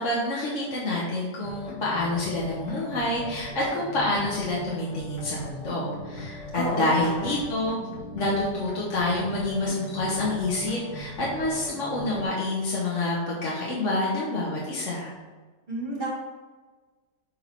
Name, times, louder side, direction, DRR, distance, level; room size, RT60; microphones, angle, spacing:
voice 1, 0.0-7.8 8.1-15.1, left 2 dB, 50° left, -6 dB, 1.5 m, -27 dB
sound 1, 1.4-12.3, left 1 dB, 80° left, 1.6 m, -39 dB
voice 2, 6.5-7.4 15.7-16.1, right 1 dB, 30° right, -9 dB, 1.9 m, -31 dB
7.0 x 3.8 x 4.5 m, 1.4 s
omnidirectional pair, 1.7 m